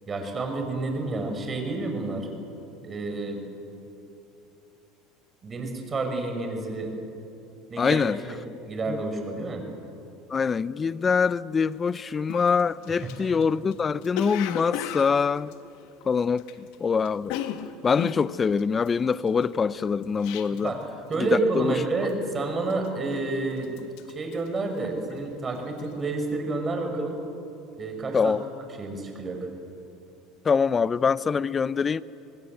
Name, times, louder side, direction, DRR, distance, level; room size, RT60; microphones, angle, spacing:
voice 1, 0.1-2.3 2.8-3.4 5.4-6.9 7.7-8.4 8.6-9.6 13.2-13.3 20.6-20.8 21.1-23.7 24.1-27.2 27.8-28.3 28.8-29.5, right 3 dB, 30° right, 5.6 m, -29 dB
voice 2, 7.8-8.2 8.9-9.0 10.3-15.5 16.1-17.3 17.8-20.7 21.2-21.3 21.5-21.7 28.1-28.4 30.4-32.0, left 5 dB, 30° left, 0.7 m, -24 dB
Cough, 11.9-12.0 12.3-16.8 17.0-20.8 21.1-21.5 21.8-22.2 22.7-23.3 23.6-25.3 25.6-25.9, left 9 dB, 70° left, 1.7 m, -36 dB
26.5 x 20.0 x 7.9 m
hypercardioid pair, 90°, 0 cm